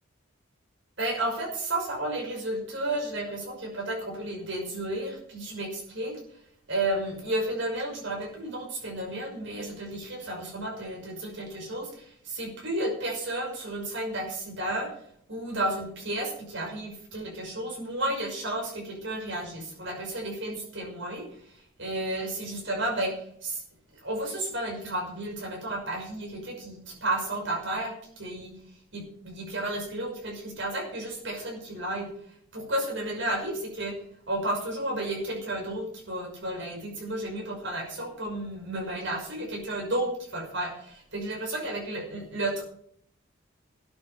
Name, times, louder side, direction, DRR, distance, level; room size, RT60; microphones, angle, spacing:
voice 1, 1.0-6.1 6.7-14.9 15.3-23.6 23.9-28.5 28.9-32.1 32.5-33.9 34.3-42.6, right 1 dB, 60° right, 0 dB, 5.8 m, -32 dB
13.0 x 9.5 x 7.0 m, 0.65 s
head